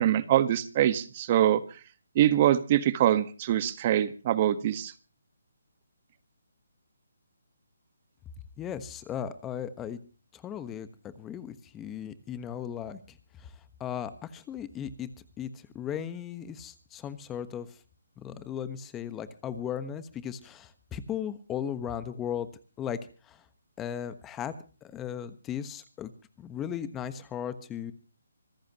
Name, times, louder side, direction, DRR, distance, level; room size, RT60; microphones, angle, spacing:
voice 1, 0.0-1.6 2.1-4.9, right 12 dB, 35° right, 13 dB, 1.3 m, -24 dB
voice 2, 8.6-10.0 10.3-13.5 13.8-15.1 15.4-17.8 18.2-22.5 22.8-23.0 23.3-23.4 23.8-24.5 24.8-26.1 26.4-27.9, left 9 dB, 15° left, 13 dB, 1.2 m, -36 dB
25.5 x 14.0 x 3.0 m, 0.36 s
hypercardioid pair, 155°, 0 cm